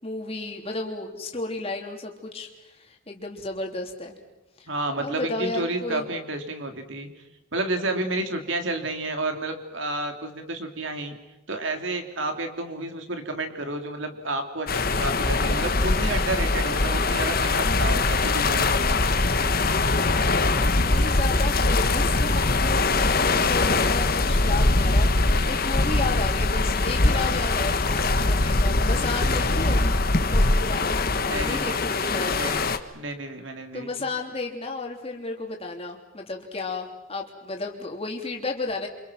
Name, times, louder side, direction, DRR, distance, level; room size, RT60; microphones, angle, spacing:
voice 1, 0.0-4.2 4.6-4.7 5.0-6.1 20.5-29.8 30.3-32.4 33.7-38.9, left 3 dB, 30° left, 1 dB, 3.5 m, -33 dB
voice 2, 4.7-7.1 7.5-11.1 11.5-18.7 30.7-30.9 31.2-31.8 32.3-32.6 32.9-33.9, right 2 dB, 60° right, 5 dB, 3.2 m, -31 dB
sound 1, 14.7-32.8, left 2 dB, 45° left, 1.4 m, -22 dB
29.0 x 26.5 x 6.0 m, 1.0 s
head